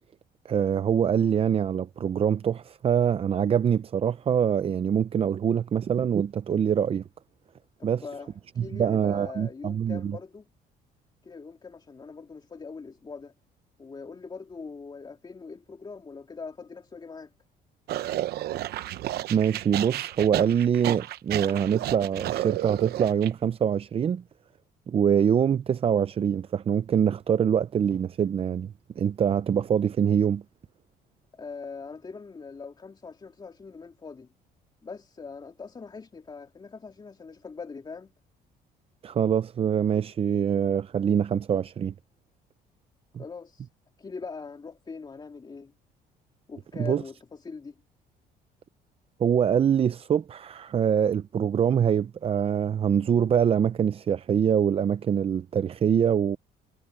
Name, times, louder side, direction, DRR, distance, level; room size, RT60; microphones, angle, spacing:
voice 1, 0.5-7.0 7.8-8.0 8.6-10.2 19.3-24.2 24.9-30.4 39.0-41.9 46.8-47.0 49.2-56.4, right 8 dB, 35° right, 0.5 m, -24 dB
voice 2, 7.8-10.5 11.2-13.3 13.8-17.3 31.3-34.3 34.8-38.1 43.2-43.7 44.0-45.7 46.5-47.7, left 4 dB, 25° left, 3.1 m, -42 dB
sound 1, 17.9-23.3, right 14 dB, 70° right, 0.9 m, -32 dB
cardioid pair, 110°, 17 cm